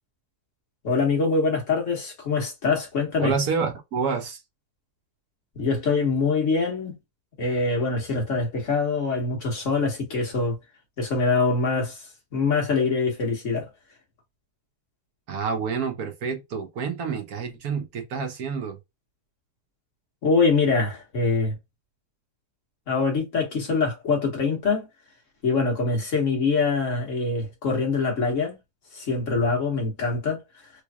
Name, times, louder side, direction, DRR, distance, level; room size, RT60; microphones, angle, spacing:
voice 1, 0.8-3.3 5.5-7.0 7.4-10.6 11.0-12.0 12.3-13.7 20.2-21.5 22.9-24.9 25.4-28.6 28.9-30.4, left 4 dB, 50° left, 1.7 m, -24 dB
voice 2, 3.2-4.4 15.3-18.8, right 5 dB, 65° right, 1.3 m, -28 dB
3.9 x 3.2 x 2.2 m
omnidirectional pair, 1.8 m